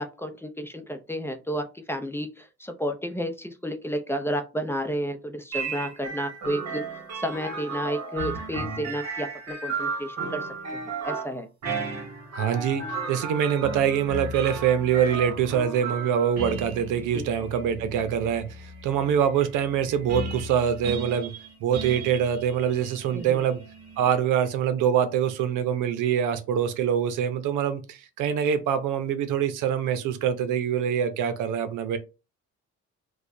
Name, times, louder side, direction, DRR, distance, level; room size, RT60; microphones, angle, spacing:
voice 1, 0.0-11.5 17.0-17.3 23.1-23.4, equal, 10° left, 0.6 m, -32 dB
sound 1, 5.5-24.2, right 3 dB, 60° right, 1.5 m, -35 dB
voice 2, 12.3-21.3 21.6-23.6 24.0-32.0, right 8 dB, 85° right, 0.7 m, -24 dB
4.7 x 2.2 x 2.6 m
cardioid pair, 90°, 30 cm